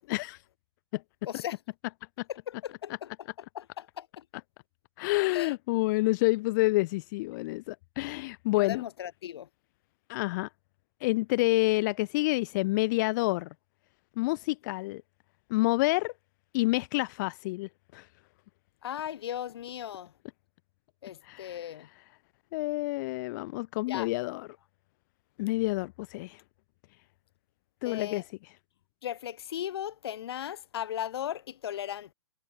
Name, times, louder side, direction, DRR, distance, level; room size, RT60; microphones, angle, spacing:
voice 1, 1.3-1.6 2.3-3.3 3.5-4.2 5.3-5.5 8.6-9.5 18.8-20.1 21.0-21.9 23.9-24.1 27.8-28.2 29.0-32.1, left 10 dB, 60° left, 1.8 m, -37 dB
voice 2, 5.0-8.9 10.1-10.5 11.0-13.5 14.2-15.0 15.5-16.1 16.5-18.1 21.2-21.6 22.5-24.5 25.4-26.4 27.8-28.2, left 21 dB, 40° left, 1.4 m, -28 dB
hypercardioid pair, 125°, 15 cm